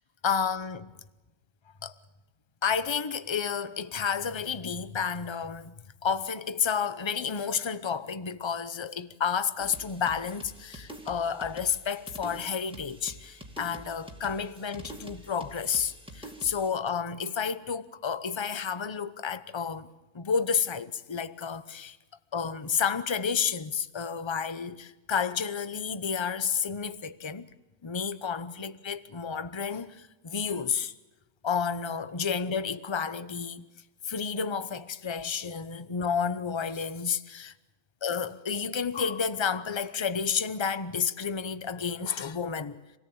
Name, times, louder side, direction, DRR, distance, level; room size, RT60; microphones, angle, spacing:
voice 1, 0.2-0.9 1.8-1.9 2.6-5.7 6.0-19.9 20.1-22.0 22.3-27.5 27.8-30.9 31.4-33.7 34.0-37.5 38.0-43.0, left 6 dB, 25° left, 0.7 m, -31 dB
sound 1, 9.6-16.7, equal, 5° right, 2.4 m, -46 dB
27.0 x 18.0 x 8.7 m
omnidirectional pair, 1.6 m